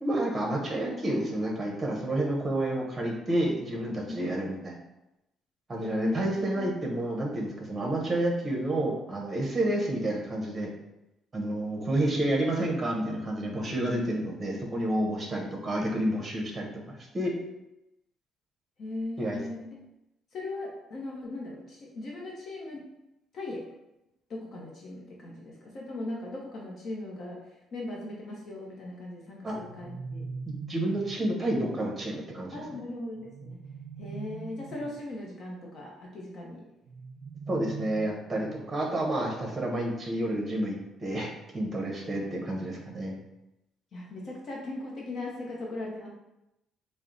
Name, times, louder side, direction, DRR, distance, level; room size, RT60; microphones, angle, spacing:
voice 1, 0.0-4.8 5.7-10.7 11.3-17.3 19.2-19.4 29.4-29.6 30.5-32.6 37.5-43.1, right 1 dB, 20° right, -1 dB, 0.8 m, -30 dB
voice 2, 4.1-4.5 5.7-6.2 6.6-6.7 18.8-19.7 20.3-22.8 23.3-23.6 24.3-27.4 27.7-30.2 32.5-33.6 34.0-36.6 43.9-46.1, left 2 dB, 45° left, -2 dB, 0.7 m, -38 dB
sound 1, 29.4-31.3 33.1-35.0 36.8-38.8, right 4 dB, 60° right, 0.5 m, -42 dB
4.4 x 2.1 x 3.8 m, 0.90 s
cardioid pair, 155°, 0 cm